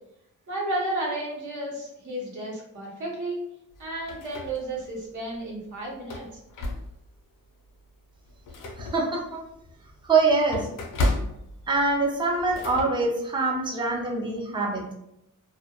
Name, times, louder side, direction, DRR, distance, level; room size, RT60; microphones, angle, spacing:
voice 1, 0.5-3.5 3.8-6.4, right 1 dB, 60° right, -3 dB, 0.8 m, -32 dB
sound 1, 3.7-5.0 5.4-5.5 6.0-7.2 7.7-7.8 8.2-12.8, left 2 dB, 70° left, 0.5 m, -33 dB
voice 2, 8.8-9.4 10.0-10.7 11.7-14.8, right 3 dB, 15° right, -1 dB, 0.3 m, -24 dB
2.2 x 2.1 x 2.8 m, 0.82 s
wide cardioid pair, 180°, 34 cm